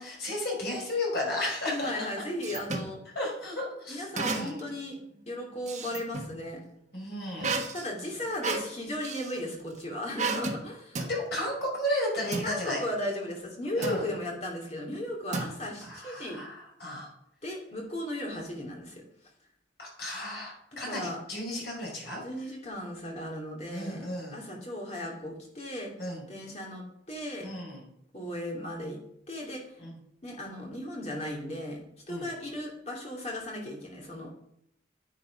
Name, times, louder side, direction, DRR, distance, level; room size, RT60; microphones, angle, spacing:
voice 1, 0.0-2.1 3.2-4.7 6.9-7.6 11.1-12.8 13.8-14.1 15.8-17.1 19.8-22.2 23.7-24.4 26.0-26.3 27.4-27.8 29.8-30.0 32.1-32.3, left 1 dB, 60° left, -2 dB, 5.4 m, -34 dB
voice 2, 1.7-3.0 3.9-5.0 5.3-6.6 7.7-11.0 12.4-16.4 17.4-19.0 20.8-21.2 22.2-25.9 26.3-27.5 28.1-29.0 29.3-29.7 30.2-34.3, left 1 dB, 35° left, 0 dB, 2.9 m, -36 dB
sound 1, 1.8-2.9 4.1-4.7 5.1-6.3 7.4-9.4 10.2-10.6 10.9-11.2 12.3-12.5 13.8-14.1 15.3-15.9, right 4 dB, 40° right, 1.4 m, -33 dB
10.0 x 8.6 x 5.3 m, 0.75 s
head